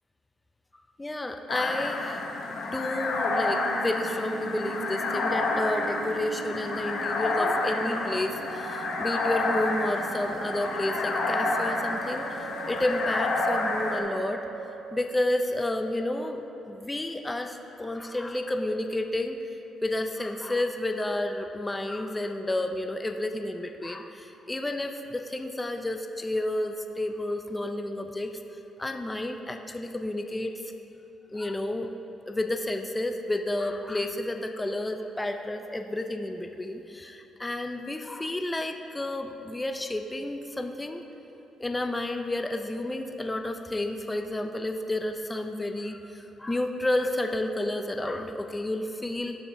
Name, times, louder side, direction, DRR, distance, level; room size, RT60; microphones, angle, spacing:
voice 1, 1.0-14.4 14.9-19.4 19.8-28.3 28.8-30.7 31.3-31.9 32.3-41.0 41.6-49.4, left 1 dB, 15° left, 5 dB, 0.4 m, -31 dB
sound 1, 1.5-14.0, left 3 dB, 70° left, 0.8 m, -29 dB
Musical instrument, 2.5-15.9, right 7 dB, 90° right, 0.3 m, -41 dB
13.5 x 4.8 x 2.7 m, 3.0 s
cardioid pair, 90°, 0 cm